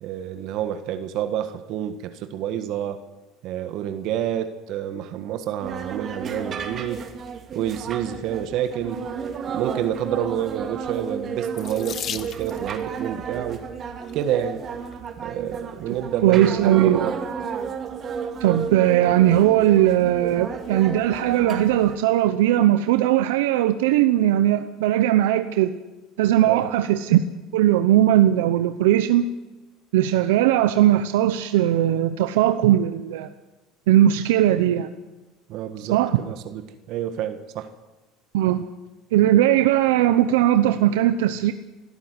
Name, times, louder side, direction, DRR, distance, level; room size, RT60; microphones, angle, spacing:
voice 1, 0.0-3.0 3.4-7.1 7.5-9.0 9.5-13.6 14.1-14.6 15.2-17.1 26.4-26.7 35.5-37.7, right 10 dB, 60° right, 9 dB, 1.5 m, -28 dB
sound 1, 5.6-22.0, right 6 dB, 35° right, 2.4 m, -32 dB
Water tap faucet / Sink (filling or washing), 11.5-12.8 13.8-14.2 14.9-15.0 15.4-15.5, left 9 dB, 40° left, 1.1 m, -35 dB
voice 2, 16.2-17.1 18.4-25.7 26.2-27.2 27.5-29.2 29.9-33.3 33.9-34.9 35.8-36.2 38.3-38.6 39.1-41.5, right 12 dB, 90° right, 10 dB, 0.8 m, -19 dB
20.5 x 13.0 x 9.6 m, 1.1 s
supercardioid pair, 115°, 0 cm